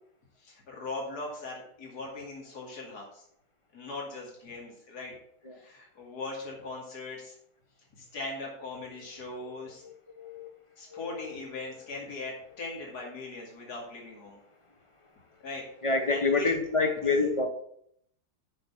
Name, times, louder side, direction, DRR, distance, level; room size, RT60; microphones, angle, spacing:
voice 1, 0.4-3.2 3.7-5.2 5.5-7.4 7.9-9.8 10.8-14.4 15.4-15.7 16.1-16.5, left 2 dB, 70° left, -3 dB, 3.0 m, -40 dB
voice 2, 9.8-10.5 10.9-11.4 15.8-17.5, left 3 dB, 25° left, 6 dB, 0.9 m, -28 dB
6.8 x 6.2 x 7.1 m, 0.70 s
omnidirectional pair, 1.8 m